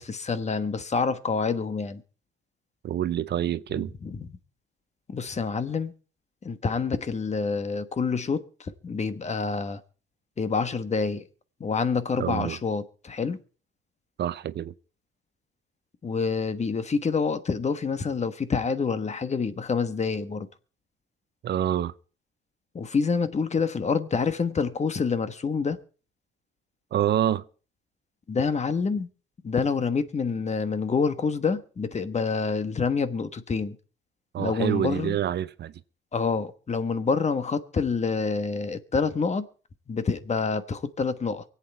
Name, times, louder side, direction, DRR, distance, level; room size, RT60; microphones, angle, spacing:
voice 1, 0.0-2.0 4.0-4.4 5.1-5.9 6.4-9.8 10.4-11.2 11.6-13.4 16.0-20.5 22.7-25.8 28.3-29.1 29.4-33.8 34.4-35.2 36.1-39.5 39.9-41.4, left 5 dB, 35° left, 1.2 m, -27 dB
voice 2, 2.8-3.9 12.2-12.6 14.2-14.7 21.4-21.9 26.9-27.4 34.3-35.7, right 11 dB, 60° right, 0.6 m, -27 dB
24.0 x 8.5 x 4.3 m
cardioid pair, 90°, 20 cm